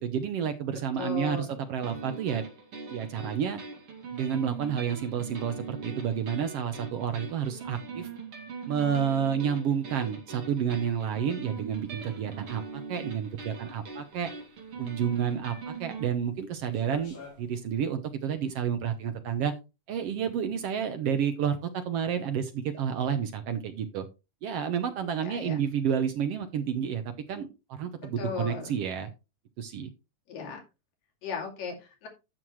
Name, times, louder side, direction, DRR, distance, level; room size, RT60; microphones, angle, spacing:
voice 1, 0.0-2.4 2.9-3.6 4.1-8.1 8.7-14.3 14.8-19.5 19.9-24.1 24.4-27.0 27.3-29.1 29.6-29.9, right 8 dB, 75° right, 8 dB, 1.4 m, -30 dB
voice 2, 1.0-1.5 25.2-25.6 28.2-28.8 30.3-30.6 31.2-32.1, left 5 dB, 85° left, 1 dB, 4.2 m, -36 dB
sound 1, 1.8-16.1, right 5 dB, 45° right, 2.9 m, -41 dB
sound 2, 11.3-17.7, left 4 dB, 55° left, 6.1 m, -53 dB
13.0 x 6.3 x 3.1 m, 0.28 s
omnidirectional pair, 3.8 m